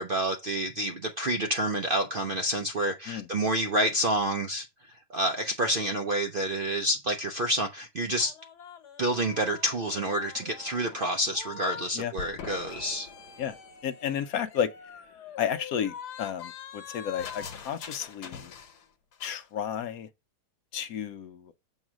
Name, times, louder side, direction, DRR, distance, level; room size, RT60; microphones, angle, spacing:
voice 1, 0.0-4.7 5.1-8.3 9.0-13.1, right 1 dB, 55° right, 0.6 m, -28 dB
sound 1, 8.2-11.9 12.2-18.9 19.1-19.4, left 7 dB, 85° left, 1.5 m, -44 dB
voice 2, 13.8-14.7 15.4-18.5 19.2-20.1 20.7-21.6, left 8 dB, 70° left, 1.0 m, -32 dB
7.2 x 3.1 x 6.1 m
omnidirectional pair, 1.7 m